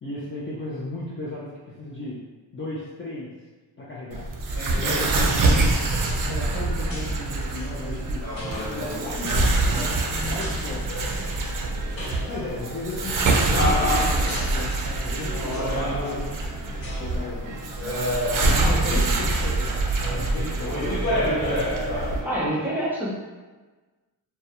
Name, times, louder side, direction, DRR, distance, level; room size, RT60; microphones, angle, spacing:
voice 1, 0.0-2.2 2.5-3.3 3.8-4.3 4.8-5.4 6.2-10.8 12.3-16.4 16.7-18.0 18.5-18.7 19.0-19.8 20.1-21.6, left 2 dB, 30° left, -7 dB, 0.4 m, -35 dB
sound 1, 4.1-22.2, right 2 dB, 50° right, 0.4 m, -25 dB
sound 2, 4.3-22.7, left 1 dB, 50° left, 1.2 m, -32 dB
voice 2, 4.9-5.3 18.6-19.3 22.2-23.2, equal, 5° right, -7 dB, 0.8 m, -28 dB
2.3 x 2.1 x 2.8 m, 1.3 s
cardioid pair, 80°, 44 cm